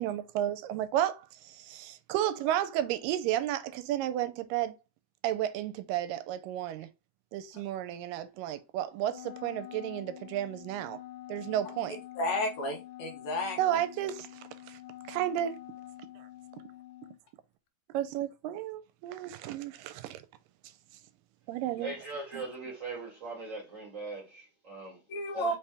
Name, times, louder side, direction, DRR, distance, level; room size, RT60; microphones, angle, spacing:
voice 1, 0.0-4.8 5.2-6.9 7.3-11.0 11.3-12.0 13.6-14.3 14.7-14.8 15.1-15.6 17.9-20.2 21.5-21.9 22.3-22.4, right 12 dB, 85° right, 2.2 m, -32 dB
Wind instrument woodwind instrument, 9.1-17.2, left 14 dB, 90° left, 2.4 m, -47 dB
voice 2, 12.2-13.8 25.1-25.6, left 1 dB, 70° left, 2.0 m, -32 dB
voice 3, 21.8-25.0 25.3-25.5, right 2 dB, 30° right, 1.6 m, -40 dB
5.3 x 2.9 x 3.3 m
omnidirectional pair, 3.9 m